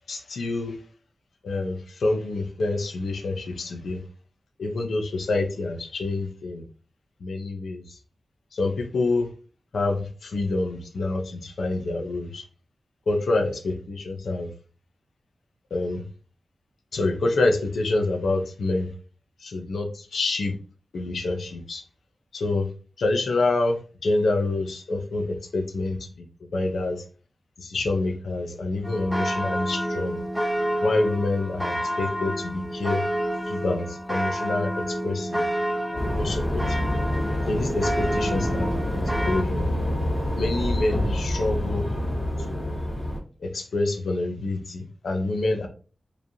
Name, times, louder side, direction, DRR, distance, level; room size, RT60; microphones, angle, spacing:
voice 1, 0.1-0.8 1.4-4.0 4.6-6.6 7.2-8.0 8.5-9.3 9.7-12.4 13.1-14.5 15.7-16.0 16.9-18.9 19.4-20.5 20.9-21.8 22.3-22.7 23.0-26.1 26.5-27.0 27.6-30.2 30.8-33.0 33.5-35.4 35.9-36.9 37.5-39.7 40.4-41.9 42.4-42.8 43.4-45.7, left 2 dB, 85° left, 4 dB, 0.8 m, -27 dB
sound 1, 28.8-39.4, equal, ahead, 0.5 m, -29 dB
sound 2, 36.0-43.2, left 1 dB, 20° left, 2.1 m, -27 dB
5.1 x 3.3 x 2.7 m, 0.38 s
wide cardioid pair, 75°, 0 cm